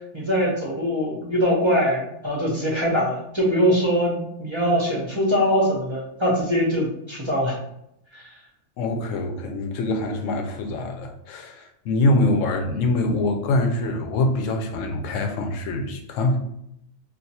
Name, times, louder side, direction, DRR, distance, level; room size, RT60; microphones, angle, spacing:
voice 1, 0.1-7.6 8.1-8.2, equal, 30° right, -4 dB, 0.6 m, -22 dB
voice 2, 8.8-16.4, left 2 dB, 70° left, 5 dB, 0.9 m, -24 dB
2.5 x 2.4 x 4.1 m, 0.78 s
omnidirectional pair, 1.4 m